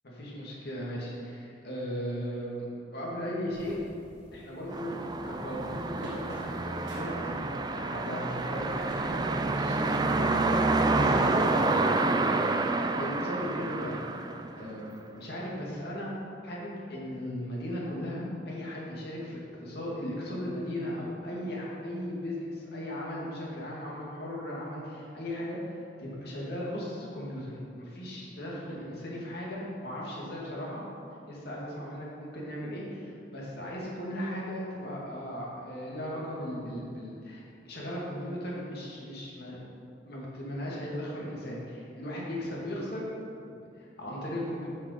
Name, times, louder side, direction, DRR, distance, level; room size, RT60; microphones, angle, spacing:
voice 1, 0.0-2.7 2.9-3.7 4.3-14.0 14.6-16.1 16.4-25.6 26.0-30.8 31.3-39.6 40.1-43.1 43.4-44.7, equal, 60° left, -5 dB, 2.0 m, -37 dB
sound 1, 3.5-9.1, equal, 75° right, 1.5 m, -49 dB
sound 2, 4.7-14.9, right 3 dB, 25° right, 0.3 m, -28 dB
7.2 x 5.0 x 6.5 m, 2.5 s
head